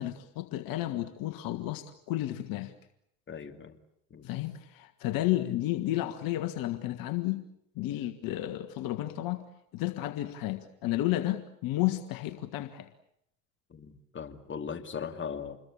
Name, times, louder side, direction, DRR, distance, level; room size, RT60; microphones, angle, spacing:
voice 1, 0.0-2.7 4.2-7.4 7.8-9.4 9.7-12.9, left 15 dB, 60° left, 9 dB, 1.7 m, -32 dB
voice 2, 3.3-3.8 4.1-4.3 13.7-15.6, left 6 dB, 30° left, 7 dB, 2.6 m, -39 dB
27.0 x 21.5 x 8.6 m, 0.73 s
hypercardioid pair, 75°, 38 cm